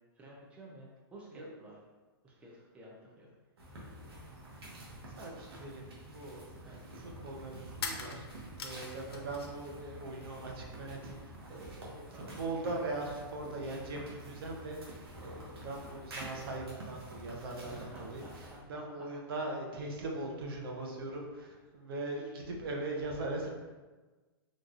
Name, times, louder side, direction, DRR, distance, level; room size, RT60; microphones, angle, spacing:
voice 1, 0.2-1.7 2.2-3.3 6.6-6.8 9.1-9.3 12.1-12.3 17.6-18.8 22.3-22.4, right 1 dB, 10° right, -4 dB, 0.5 m, -53 dB
sound 1, 3.6-18.6, right 1 dB, 80° right, 1.1 m, -48 dB
voice 2, 5.1-23.5, right 2 dB, 65° right, 0 dB, 0.7 m, -40 dB
sound 2, 7.8-9.7 10.0-10.8, left 5 dB, 85° left, 0.5 m, -43 dB
3.9 x 2.5 x 2.4 m, 1.3 s
hypercardioid pair, 140°, 13 cm